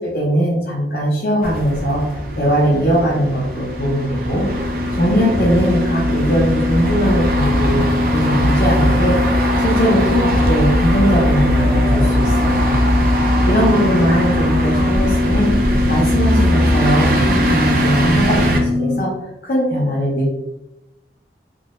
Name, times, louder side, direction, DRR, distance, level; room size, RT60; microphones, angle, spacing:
voice 1, 0.0-7.8 8.1-12.8 13.4-19.1 19.4-20.3, equal, 55° left, -6 dB, 0.7 m, -20 dB
sound 1, 1.4-18.6, equal, 55° right, 0.5 m, -20 dB
sound 2, 2.8-19.0, left 3 dB, 75° right, 1.2 m, -22 dB
Thunder / Rain, 7.9-16.9, equal, 20° right, 0.9 m, -35 dB
3.7 x 2.1 x 2.4 m, 0.88 s
head